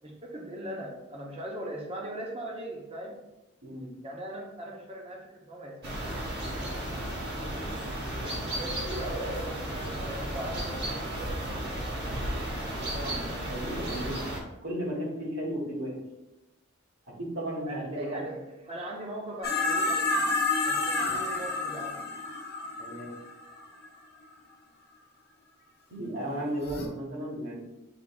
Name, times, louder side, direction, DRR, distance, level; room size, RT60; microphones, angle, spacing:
voice 1, 0.0-3.2 4.0-6.2 7.4-7.7 8.1-11.7 17.7-18.4 18.7-20.0 20.7-22.0, right 1 dB, 25° right, -1 dB, 0.7 m, -39 dB
voice 2, 3.6-3.9 12.9-14.3 14.6-16.0 17.1-18.3 22.8-23.1 25.9-27.6, equal, 70° right, -3 dB, 1.4 m, -35 dB
sound 1, 5.8-14.4, right 1 dB, 50° right, 1.1 m, -34 dB
sound 2, 19.4-23.9 26.7-26.9, left 3 dB, 50° left, 0.8 m, -29 dB
7.3 x 3.1 x 2.3 m, 0.98 s
head